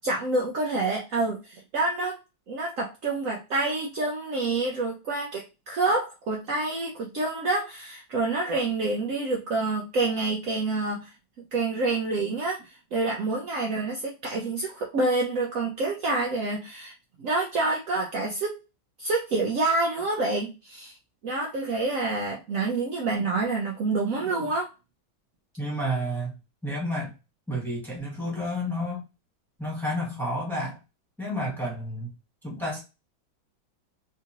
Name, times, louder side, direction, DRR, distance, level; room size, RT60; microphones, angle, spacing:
voice 1, 0.0-2.2 2.5-11.1 11.5-18.6 19.0-21.0 21.2-24.7, right 3 dB, 80° right, 0 dB, 0.7 m, -27 dB
voice 2, 25.6-26.4 26.6-27.1 27.5-29.0 29.6-30.8 31.2-32.1 32.4-32.8, equal, ahead, -4 dB, 1.2 m, -30 dB
3.7 x 2.6 x 2.8 m, 0.28 s
omnidirectional pair, 2.2 m